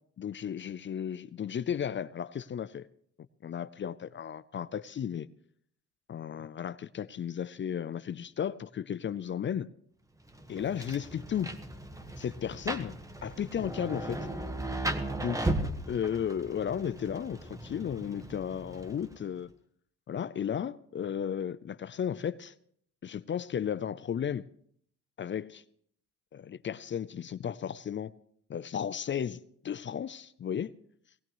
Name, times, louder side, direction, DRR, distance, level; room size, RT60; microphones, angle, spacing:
voice 1, 0.2-2.9 3.4-5.3 6.1-9.7 10.5-11.5 12.2-13.0 13.2-14.3 15.2-15.5 15.9-19.5 20.1-22.5 23.0-24.5 25.2-25.6 26.3-28.1 28.5-30.7, left 8 dB, 40° left, 0.5 m, -34 dB
Rain, 10.3-19.3, right 1 dB, 10° right, 1.3 m, -37 dB
19.5 x 18.0 x 3.1 m
cardioid pair, 90°, 30 cm